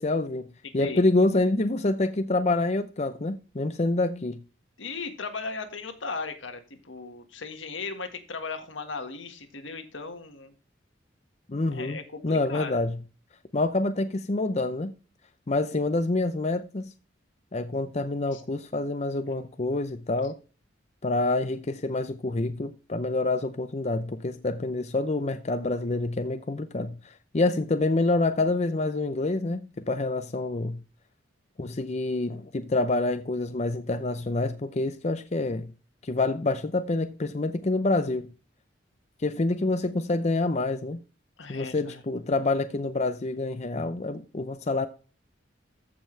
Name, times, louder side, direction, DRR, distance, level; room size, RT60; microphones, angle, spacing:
voice 1, 0.0-4.4 11.5-12.0 12.2-13.0 13.5-14.9 15.5-16.9 17.5-20.4 21.0-30.8 31.6-35.7 36.0-38.3 39.2-41.0 41.5-44.9, left 2 dB, 35° left, 0.6 m, -27 dB
voice 2, 4.8-10.5 11.7-12.8 18.3-18.4 41.4-42.0, left 4 dB, 80° left, 1.7 m, -37 dB
14.5 x 5.6 x 3.2 m
head